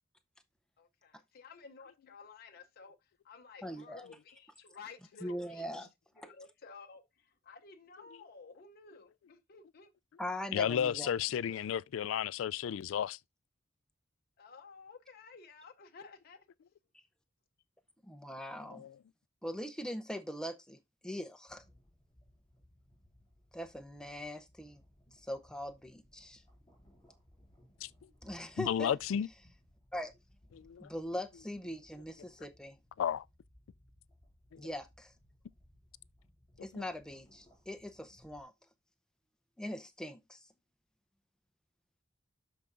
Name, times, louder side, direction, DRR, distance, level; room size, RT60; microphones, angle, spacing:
voice 1, 0.8-5.9 6.2-9.9 14.4-16.5, left 5 dB, 50° left, 0.7 m, -54 dB
voice 2, 3.6-4.1 5.2-5.9 10.2-11.1 18.0-18.8 19.4-21.6 23.5-24.8 25.3-26.4 28.2-29.0 29.9-30.1 30.8-32.8 34.6-35.1 36.6-38.5 39.6-40.4, equal, 5° left, 0.7 m, -41 dB
voice 3, 10.5-13.2 18.7-18.9 27.8-27.9 28.6-29.3 30.5-30.9 33.0-33.2 34.5-34.6 36.7-36.9, left 9 dB, 80° left, 0.3 m, -33 dB
sound 1, 21.5-38.4, left 1 dB, 20° left, 4.2 m, -65 dB
12.5 x 4.7 x 2.5 m
head